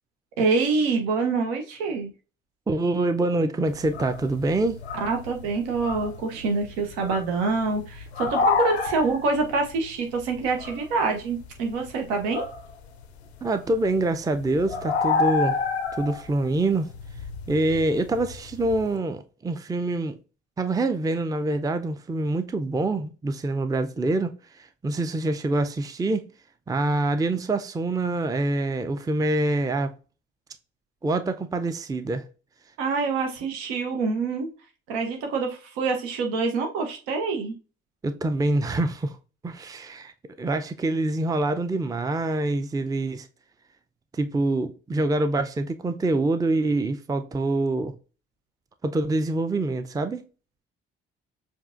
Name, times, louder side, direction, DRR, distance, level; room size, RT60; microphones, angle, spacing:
voice 1, 0.4-2.1 5.0-12.5 32.8-34.5 34.9-37.5, right 4 dB, 75° right, 0.9 m, -26 dB
voice 2, 2.7-4.8 13.4-15.6 16.0-16.9 17.5-20.2 20.6-26.3 26.7-29.9 31.0-32.3 38.0-39.2 39.4-40.1 40.4-43.3 44.1-47.9 48.8-50.2, right 2 dB, 10° right, 0.5 m, -25 dB
sound 1, 3.7-13.0 13.4-18.9, left 5 dB, 90° left, 0.5 m, -30 dB
7.1 x 2.5 x 2.5 m
hypercardioid pair, 45°, 31 cm